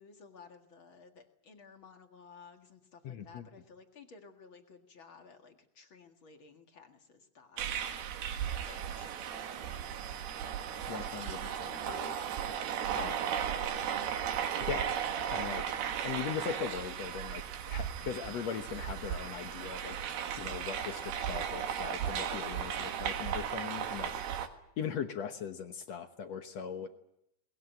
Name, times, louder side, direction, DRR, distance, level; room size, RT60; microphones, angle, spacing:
voice 1, 0.0-8.1 8.6-10.2 11.0-11.6 26.8-26.9, left 5 dB, 40° left, 4 dB, 2.0 m, -56 dB
voice 2, 3.0-3.5 10.9-12.2 12.9-13.3 14.6-14.9 15.3-20.0 20.4-24.1 24.8-26.9, left 7 dB, 65° left, 7 dB, 1.7 m, -40 dB
sound 1, 7.6-24.5, right 9 dB, 75° right, 3.6 m, -36 dB
22.0 x 20.5 x 9.2 m, 0.79 s
omnidirectional pair, 4.5 m